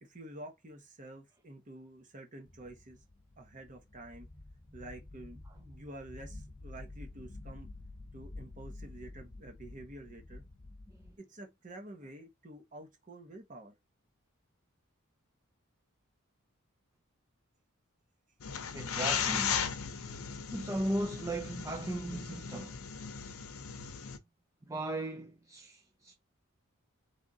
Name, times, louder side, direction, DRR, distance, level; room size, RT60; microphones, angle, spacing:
voice 1, 0.0-3.0 3.4-4.3 4.7-7.7 8.1-10.4 11.2-13.7, right 1 dB, 35° right, 1.1 m, -49 dB
sound 1, 2.5-11.2, left 2 dB, 40° left, 0.8 m, -49 dB
sound 2, 18.4-24.2, left 7 dB, 85° left, 0.7 m, -36 dB
voice 2, 18.7-19.6 20.5-22.8 24.6-26.1, right 1 dB, 15° right, 0.5 m, -37 dB
3.6 x 3.5 x 4.0 m
head